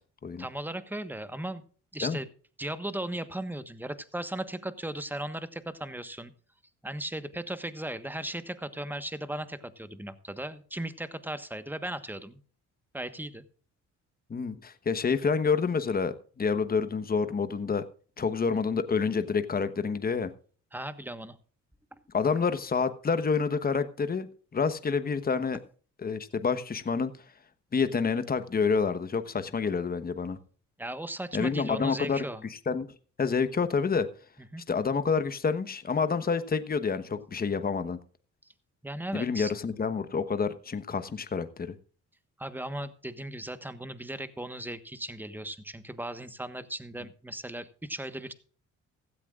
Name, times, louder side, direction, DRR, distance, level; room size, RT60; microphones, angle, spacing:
voice 1, 0.4-1.6 1.9-2.3 2.6-6.3 6.8-12.4 12.9-13.4 20.7-21.4 21.9-22.0 30.8-32.4 34.5-34.6 38.8-39.5 42.4-48.3, right 1 dB, 5° right, 11 dB, 1.3 m, -37 dB
voice 2, 14.3-17.8 18.2-20.3 22.1-24.3 24.5-25.6 26.0-27.1 27.7-30.4 31.3-32.2 32.7-32.9 33.2-34.1 34.7-38.0 39.1-41.7, left 5 dB, 30° left, 11 dB, 1.1 m, -28 dB
16.0 x 13.5 x 2.5 m, 0.43 s
cardioid pair, 90°, 30 cm